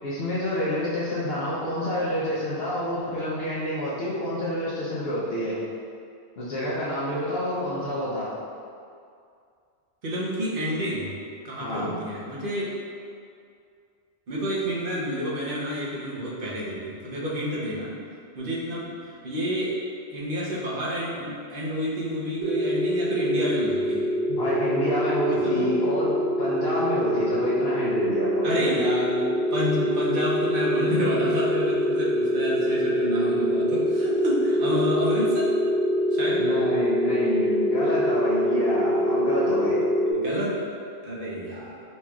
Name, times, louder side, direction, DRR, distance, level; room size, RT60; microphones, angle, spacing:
voice 1, 0.0-5.6 6.4-8.3 11.6-11.9 24.3-26.1 26.4-28.7 36.4-39.8, equal, 70° left, -8 dB, 0.9 m, -28 dB
voice 2, 10.0-11.1 11.4-12.7 14.3-17.9 18.3-18.9 19.2-19.8 20.1-24.1 25.3-25.8 28.4-35.5 36.1-36.5 38.7-39.3 39.5-39.7 40.1-40.6 41.0-41.8, equal, 55° right, -6 dB, 1.0 m, -29 dB
sound 1, 22.4-40.1, equal, 80° right, 0.8 m, -25 dB
5.6 x 3.1 x 2.3 m, 2.3 s
omnidirectional pair, 1.1 m